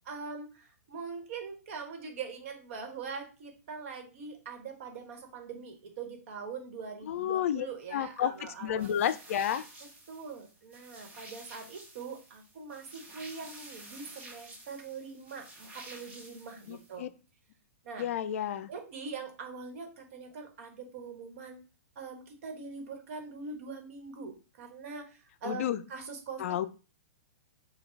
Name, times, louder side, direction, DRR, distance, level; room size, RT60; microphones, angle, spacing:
voice 1, 0.0-8.9 10.1-17.0 17.8-18.1 18.7-21.6 22.0-26.4, right 5 dB, 55° right, 4 dB, 1.2 m, -43 dB
voice 2, 7.0-9.6 16.7-17.1 18.0-18.7 25.4-25.8 26.4-26.7, left 10 dB, 60° left, 12 dB, 0.4 m, -31 dB
sound 1, 8.8-17.0, right 2 dB, 15° right, 1.1 m, -51 dB
4.4 x 2.3 x 4.4 m, 0.34 s
hypercardioid pair, 125°, 8 cm